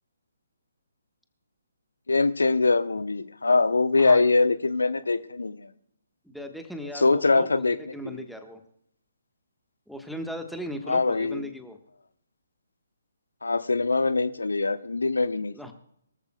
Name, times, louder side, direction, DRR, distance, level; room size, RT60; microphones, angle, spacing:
voice 1, 2.1-5.7 6.9-7.8 8.0-8.2 10.9-11.4 13.4-15.5, left 3 dB, 70° left, 14 dB, 0.7 m, -23 dB
voice 2, 6.2-8.6 9.9-11.8 15.5-15.7, equal, ahead, 5 dB, 1.3 m, -38 dB
23.0 x 14.0 x 2.3 m, 0.72 s
figure-of-eight pair, 135°, 0 cm